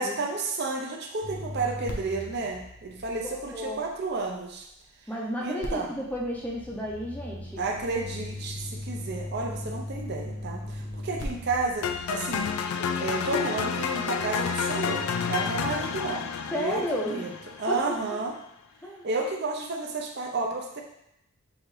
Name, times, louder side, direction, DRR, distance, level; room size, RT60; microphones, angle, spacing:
voice 1, 0.0-4.7 5.4-5.9 7.6-12.5 13.0-16.8 17.1-17.3 17.6-18.3 19.0-20.8, right 3 dB, 50° right, 1 dB, 0.6 m, -31 dB
sound 1, 1.2-4.4 5.6-12.5, left 1 dB, 55° left, 0.8 m, -39 dB
voice 2, 3.2-3.8 5.1-7.6 16.5-17.3 17.7-18.0 18.8-19.0, equal, 5° left, -3 dB, 0.6 m, -32 dB
sound 2, 11.8-17.9, left 6 dB, 85° left, 0.3 m, -30 dB
6.3 x 2.5 x 3.2 m, 0.80 s
head